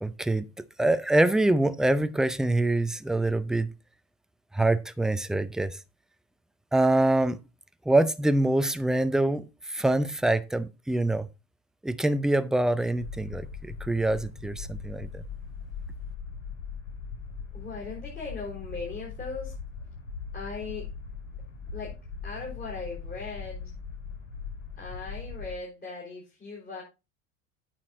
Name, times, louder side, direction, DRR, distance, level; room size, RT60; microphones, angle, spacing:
voice 1, 0.0-0.5 0.8-3.7 4.5-5.8 6.7-7.4 7.9-11.3 11.8-15.2, right 2 dB, ahead, 0.5 m, -25 dB
sound 1, 13.0-25.5, left 5 dB, 75° left, 2.5 m, -40 dB
voice 2, 17.5-19.5 20.3-20.9 21.7-22.0 22.2-23.7 24.8-26.8, left 4 dB, 25° left, 4.6 m, -38 dB
9.0 x 6.0 x 4.2 m
figure-of-eight pair, 75°, 38 cm